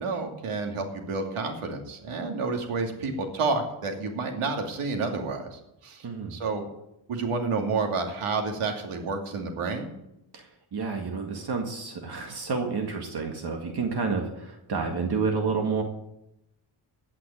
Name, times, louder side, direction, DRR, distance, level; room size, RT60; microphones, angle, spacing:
voice 1, 0.0-6.6 7.1-9.9, right 4 dB, 75° right, 3 dB, 2.7 m, -30 dB
voice 2, 6.0-6.3 10.3-10.4 10.7-15.8, right 4 dB, 50° right, 3 dB, 2.0 m, -29 dB
16.5 x 5.9 x 8.6 m, 0.84 s
cardioid pair, 110°, 50 cm